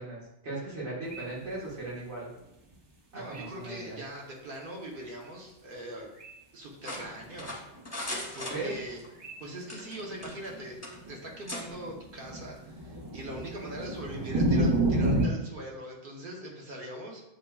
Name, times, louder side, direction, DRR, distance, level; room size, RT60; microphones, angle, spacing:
voice 1, 0.0-2.3 3.1-4.0 8.5-8.7, right 2 dB, 80° right, -7 dB, 1.6 m, -38 dB
sound 1, 1.1-1.2 2.7-2.8 3.3-3.5 6.2-6.3 7.0-7.5 8.0-8.1 8.6-8.9 9.2-9.3 9.6-9.7 10.0-15.3, right 1 dB, 35° right, 0.4 m, -29 dB
voice 2, 3.1-6.1 6.5-7.5 8.3-9.0 9.4-10.8 11.1-17.2, right 1 dB, 55° right, -1 dB, 1.0 m, -41 dB
sound 2, 6.8-9.1 9.6-10.5 10.8-11.0 11.5-11.6, left 1 dB, 15° left, 0.6 m, -38 dB
7.3 x 2.6 x 2.3 m, 0.88 s
omnidirectional pair, 1.1 m